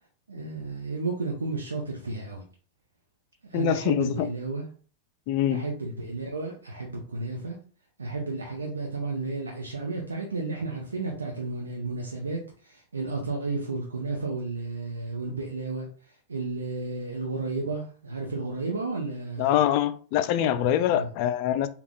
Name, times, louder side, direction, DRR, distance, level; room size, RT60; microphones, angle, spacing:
voice 1, 0.3-2.4 3.5-4.7 5.5-7.6 8.0-15.9 16.3-19.5 20.9-21.1, right 3 dB, 75° right, 0.7 m, -32 dB
voice 2, 3.5-4.3 5.3-5.6 19.4-21.7, left 11 dB, 45° left, 0.3 m, -24 dB
3.4 x 2.3 x 3.5 m
figure-of-eight pair, 90°, 0 cm